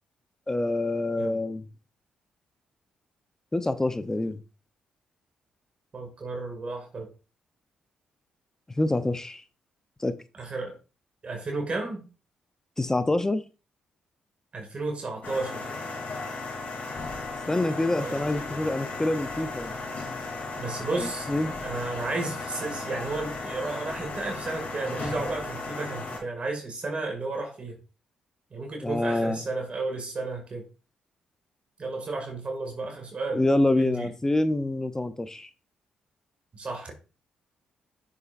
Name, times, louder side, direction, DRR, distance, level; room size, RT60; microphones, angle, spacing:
voice 1, 0.5-1.7 3.5-4.4 8.7-9.4 10.0-10.1 12.8-13.4 17.5-19.7 20.9-21.5 28.8-29.4 33.3-35.5, left 2 dB, 20° left, 0.8 m, -26 dB
voice 2, 5.9-7.1 10.4-10.8 11.2-12.0 14.5-15.7 17.9-18.2 20.6-27.8 28.5-30.7 31.8-33.4 33.8-34.1 36.5-36.9, right 3 dB, 45° right, 2.3 m, -33 dB
sound 1, 15.2-26.2, left 3 dB, 55° left, 3.5 m, -35 dB
6.9 x 6.7 x 2.6 m
hypercardioid pair, 50°, 3 cm